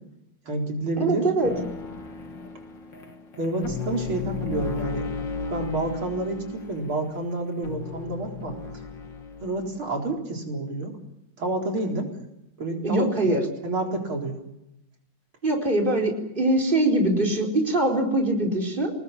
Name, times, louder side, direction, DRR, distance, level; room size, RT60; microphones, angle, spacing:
voice 1, 0.5-1.2 3.4-5.1 5.5-8.6 9.4-10.9 11.4-12.1 12.6-13.4 13.6-14.4, right 2 dB, 90° right, 1 dB, 4.9 m, -29 dB
voice 2, 1.0-1.5 12.8-13.4 15.4-18.9, right 1 dB, 25° right, 1 dB, 4.5 m, -23 dB
sound 1, 1.4-9.6, left 4 dB, 60° left, 3.0 m, -35 dB
28.0 x 20.0 x 7.2 m, 0.87 s
omnidirectional pair, 2.2 m